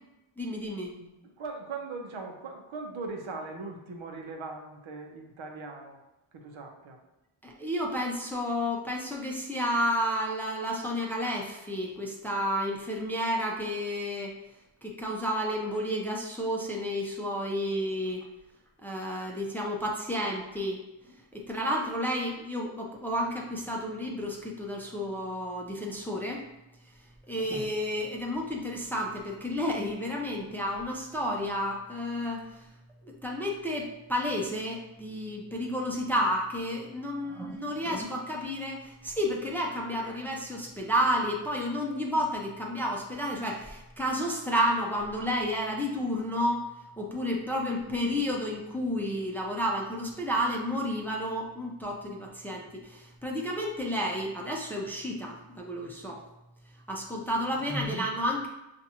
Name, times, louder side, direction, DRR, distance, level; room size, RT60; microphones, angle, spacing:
voice 1, 0.4-0.9 7.4-14.3 14.8-18.3 18.8-20.8 21.0-26.4 27.3-32.5 33.0-46.7 47.0-56.2 56.9-58.5, equal, 5° left, -1 dB, 0.6 m, -31 dB
voice 2, 1.0-6.0 6.3-7.0 37.2-37.4 37.7-37.9, right 3 dB, 70° right, 2 dB, 0.8 m, -40 dB
5.8 x 2.5 x 2.9 m, 0.95 s
wide cardioid pair, 95°, 49 cm